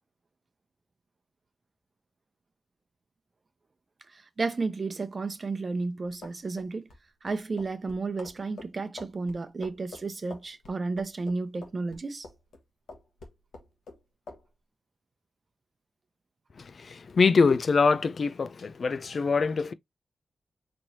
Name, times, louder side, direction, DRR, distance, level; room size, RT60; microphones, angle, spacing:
voice 1, 4.1-6.9 7.2-12.3, right 3 dB, 50° right, 0.8 m, -32 dB
sound 1, 6.0-12.6 12.9-14.0 14.3-14.4, left 3 dB, 80° left, 1.2 m, -46 dB
voice 2, 16.6-19.7, left 4 dB, 65° left, 0.4 m, -24 dB
4.4 x 3.1 x 2.7 m
cardioid pair, 45°, 0 cm